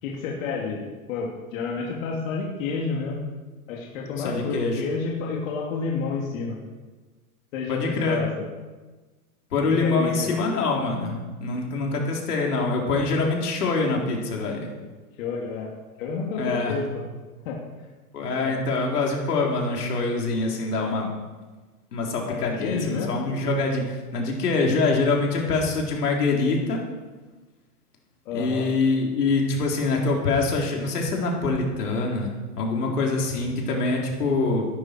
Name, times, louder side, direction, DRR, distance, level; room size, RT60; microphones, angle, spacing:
voice 1, 0.0-3.2 3.7-6.6 7.5-8.3 9.8-10.3 15.2-15.7 16.0-16.9 17.4-17.6 18.4-18.5 22.3-23.2 28.2-28.7, left 4 dB, 60° left, -3 dB, 3.0 m, -30 dB
voice 2, 4.2-4.8 7.7-8.2 9.5-14.7 16.4-16.8 18.1-21.1 21.9-26.8 28.3-34.7, left 3 dB, 80° left, -1 dB, 4.1 m, -25 dB
16.0 x 13.0 x 4.7 m, 1.3 s
hypercardioid pair, 130°, 46 cm